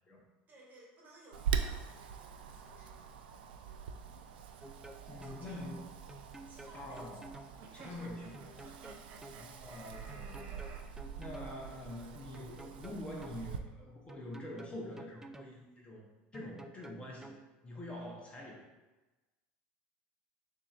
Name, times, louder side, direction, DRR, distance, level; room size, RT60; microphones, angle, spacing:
voice 1, 0.5-3.0 5.2-5.7 6.1-7.2 7.7-8.9, right 1 dB, 35° right, -2 dB, 1.4 m, -58 dB
Wind, 1.3-13.6, right 7 dB, 90° right, 0.3 m, -43 dB
sound 1, 4.6-5.4 6.1-7.5 8.3-9.4 10.1-11.5 12.3-13.4 14.1-15.5 16.3-17.4, right 2 dB, 10° right, 0.3 m, -51 dB
voice 2, 5.1-5.8 6.7-7.3 7.7-8.5 9.3-10.8 11.2-16.0 16.3-17.3 17.6-18.6, left 1 dB, 25° left, -2 dB, 1.0 m, -45 dB
sound 2, 7.6-10.8, right 4 dB, 55° right, 0.7 m, -54 dB
6.6 x 2.8 x 2.5 m, 1.2 s
supercardioid pair, 95°, 5 cm